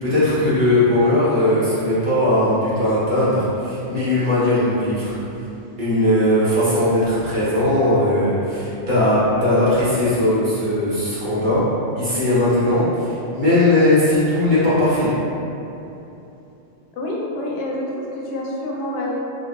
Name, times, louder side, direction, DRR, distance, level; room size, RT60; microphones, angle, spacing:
voice 1, 0.0-5.1 5.8-11.6 12.0-15.1, left 1 dB, 45° right, -11 dB, 1.0 m, -18 dB
voice 2, 16.9-19.1, left 1 dB, 90° left, -2 dB, 0.9 m, -27 dB
3.8 x 2.4 x 2.3 m, 2.9 s
omnidirectional pair, 1.2 m